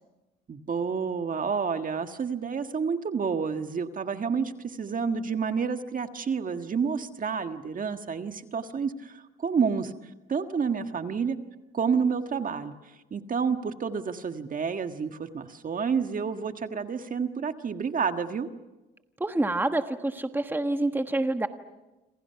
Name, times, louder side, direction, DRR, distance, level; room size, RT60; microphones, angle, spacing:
voice 1, 0.5-9.9 10.3-11.4 11.7-12.7 13.1-18.5, right 6 dB, 45° right, 7 dB, 1.6 m, -29 dB
voice 2, 19.2-21.5, right 2 dB, 10° right, 7 dB, 1.3 m, -27 dB
28.0 x 27.0 x 5.8 m, 1.1 s
cardioid pair, 90°, 20 cm